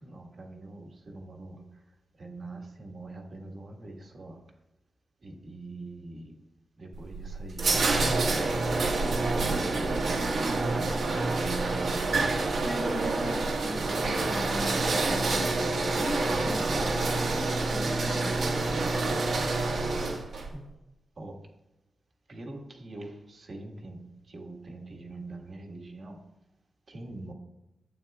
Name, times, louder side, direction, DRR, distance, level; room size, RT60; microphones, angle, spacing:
voice 1, 0.0-1.6 2.2-4.4 5.2-6.3 6.8-7.9 8.4-10.1 10.5-12.1 20.5-20.6 21.2-21.4 22.3-26.2 26.9-27.3, right 2 dB, 50° right, 1 dB, 1.5 m, -43 dB
sound 1, 6.9-20.5, right 3 dB, 65° right, 1.5 m, -27 dB
voice 2, 12.6-19.4, left 2 dB, 30° left, 3 dB, 1.0 m, -40 dB
12.0 x 8.8 x 2.3 m, 0.95 s
wide cardioid pair, 140°, 0 cm